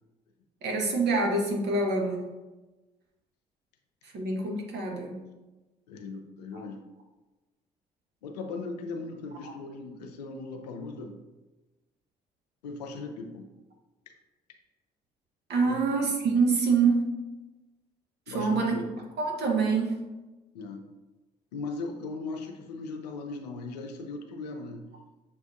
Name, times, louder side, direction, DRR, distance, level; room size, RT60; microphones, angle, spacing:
voice 1, 0.6-2.2 4.0-5.2 6.5-6.6 9.4-9.5 15.5-17.1 18.3-18.7 19.2-20.0, right 4 dB, 55° right, 0 dB, 1.1 m, -26 dB
voice 2, 5.9-6.8 8.2-11.2 12.6-13.5 15.6-15.8 18.3-18.8 20.5-20.9 21.5-24.9, left 3 dB, 85° left, 4 dB, 0.5 m, -38 dB
7.0 x 2.5 x 2.4 m, 1.1 s
hypercardioid pair, 50°, 20 cm